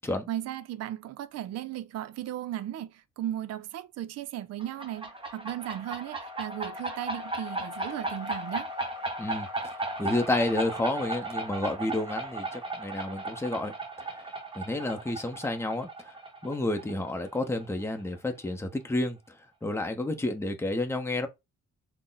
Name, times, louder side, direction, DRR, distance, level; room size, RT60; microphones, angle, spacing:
voice 1, 0.3-8.7, right 12 dB, 55° right, 0.4 m, -36 dB
sound 1, 4.6-18.0, right 2 dB, 15° right, 1.0 m, -36 dB
Wind instrument woodwind instrument, 6.2-10.4, left 10 dB, 75° left, 0.5 m, -44 dB
voice 2, 10.0-13.8 14.2-14.3 14.5-16.1 16.4-21.3, left 2 dB, 10° left, 0.7 m, -30 dB
3.7 x 2.1 x 3.9 m
cardioid pair, 90°, 30 cm